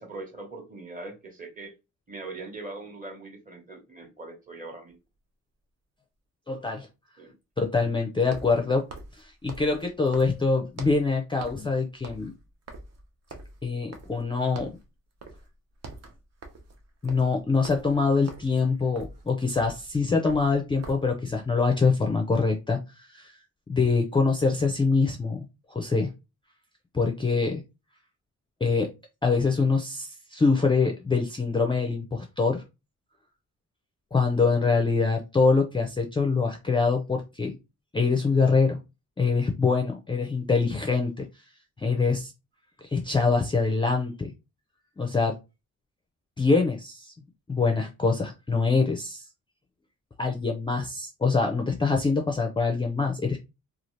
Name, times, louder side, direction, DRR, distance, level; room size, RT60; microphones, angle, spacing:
voice 1, 0.0-1.7 2.1-5.0 7.2-7.3, right 2 dB, 25° right, 0.9 m, -41 dB
sound 1, 4.9-5.0 8.2-11.1 11.4-11.7 12.0-14.3 14.6-14.9 15.2-15.5 15.7-21.2, right 3 dB, 55° right, 0.8 m, -45 dB
voice 2, 6.5-6.9 7.6-8.9 9.2-12.3 13.6-14.7 17.0-23.3 23.7-26.1 26.9-27.6 28.6-28.9 29.2-32.6 34.1-37.6 37.9-38.8 39.2-41.3 41.8-42.3 42.8-44.3 45.0-45.3 46.4-47.1 47.5-49.3 50.2-53.4, left 4 dB, 15° left, 0.4 m, -24 dB
2.7 x 2.4 x 3.1 m
cardioid pair, 120°, 31 cm